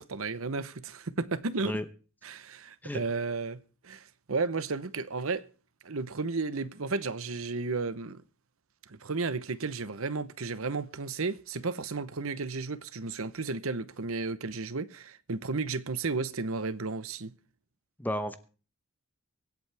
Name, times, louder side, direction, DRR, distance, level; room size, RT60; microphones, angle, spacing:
voice 1, 0.0-1.8 2.2-5.5 5.8-8.2 8.9-17.3, right 3 dB, 75° right, 0.9 m, -33 dB
voice 2, 18.0-18.4, left 1 dB, 10° left, 1.0 m, -32 dB
24.5 x 8.4 x 3.5 m
head